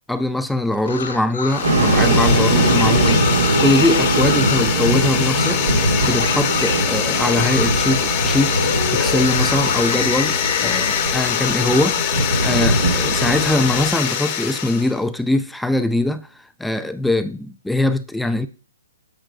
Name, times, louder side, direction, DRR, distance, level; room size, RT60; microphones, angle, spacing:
voice 1, 0.1-8.5 8.9-16.3 16.6-18.5, left 1 dB, ahead, 0.3 m, -22 dB
sound 1, 0.7-4.7 5.3-5.6 6.0-12.0 12.3-14.1, left 5 dB, 75° left, 1.5 m, -28 dB
sound 2, 1.5-15.0, left 9 dB, 30° left, 1.1 m, -23 dB
sound 3, 1.6-13.9, right 2 dB, 80° right, 2.4 m, -21 dB
8.8 x 6.3 x 2.5 m
hypercardioid pair, 145°, 0 cm